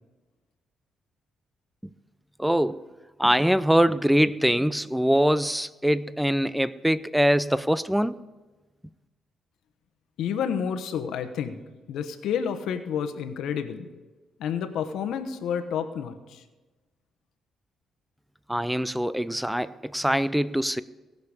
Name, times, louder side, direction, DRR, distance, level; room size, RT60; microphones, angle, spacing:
voice 1, 2.4-2.9 3.2-8.1 18.5-20.8, equal, 5° right, 0.4 m, -23 dB
voice 2, 10.2-11.6 11.9-13.9 14.4-16.4, left 7 dB, 80° left, 1.0 m, -30 dB
18.5 x 6.7 x 4.9 m
cardioid pair, 90°, 0 cm